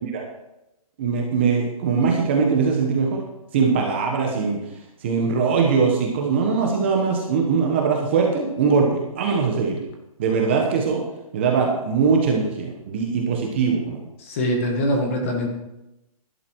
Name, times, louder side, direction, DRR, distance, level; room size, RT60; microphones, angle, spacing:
voice 1, 1.0-3.2 3.5-4.6 5.0-9.8 10.2-11.0 11.3-14.0, right 5 dB, 20° right, 1 dB, 1.2 m, -21 dB
voice 2, 14.3-15.5, equal, 20° left, 2 dB, 1.7 m, -23 dB
13.0 x 11.5 x 4.7 m, 0.92 s
hypercardioid pair, 180°, 19 cm